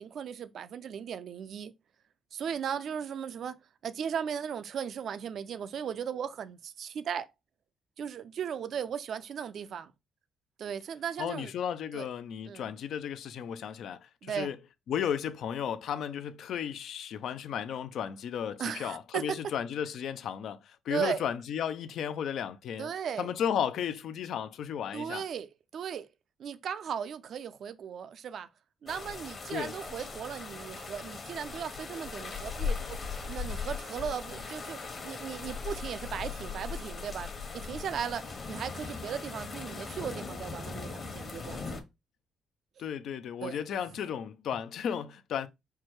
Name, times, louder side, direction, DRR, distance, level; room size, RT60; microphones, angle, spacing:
voice 1, 0.0-1.7 2.3-3.6 3.8-7.3 8.0-9.9 10.6-11.5 11.9-12.1 12.5-12.6 14.2-14.5 18.6-19.4 20.9-21.2 22.8-23.3 24.9-26.1 26.4-28.5 28.8-32.8 33.3-34.8 35.0-37.3 37.5-38.2 38.5-41.8 43.4-43.6, right 8 dB, 65° right, 0.4 m, -36 dB
voice 2, 11.2-14.6 14.9-22.9 23.2-25.3 29.5-29.7 42.8-45.5, left 8 dB, 70° left, 0.4 m, -34 dB
sound 1, 28.9-41.8, left 4 dB, 45° left, 1.1 m, -39 dB
4.6 x 2.1 x 4.6 m
cardioid pair, 90°, 0 cm